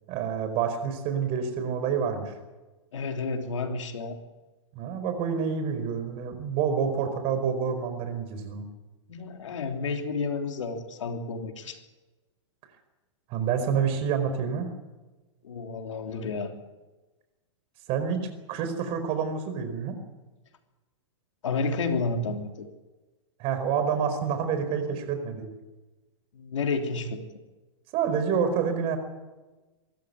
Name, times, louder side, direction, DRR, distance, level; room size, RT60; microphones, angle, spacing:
voice 1, 0.1-2.3 4.7-8.7 13.3-14.7 17.9-20.0 23.4-25.5 27.9-29.0, right 7 dB, 40° right, 8 dB, 4.8 m, -28 dB
voice 2, 2.9-4.2 9.1-11.8 15.4-16.5 21.4-22.7 26.3-27.2, left 4 dB, 80° left, 4 dB, 3.2 m, -31 dB
24.5 x 13.5 x 9.6 m, 1.2 s
hypercardioid pair, 130°, 16 cm